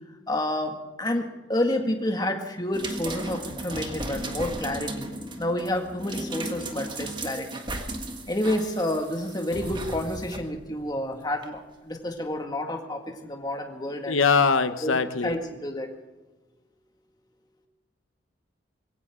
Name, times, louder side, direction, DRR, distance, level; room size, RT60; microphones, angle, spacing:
voice 1, 0.3-5.1 5.3-7.6 8.3-14.2 14.8-15.9, left 1 dB, 20° left, 3 dB, 2.0 m, -29 dB
sound 1, 2.7-10.4 11.4-11.5, right 2 dB, 25° right, 1.6 m, -36 dB
sound 2, 9.5-11.1, equal, 70° left, 3.2 m, -40 dB
voice 2, 14.1-15.3, left 5 dB, 90° left, 10 dB, 0.9 m, -22 dB
22.0 x 17.0 x 3.7 m, 1.1 s
head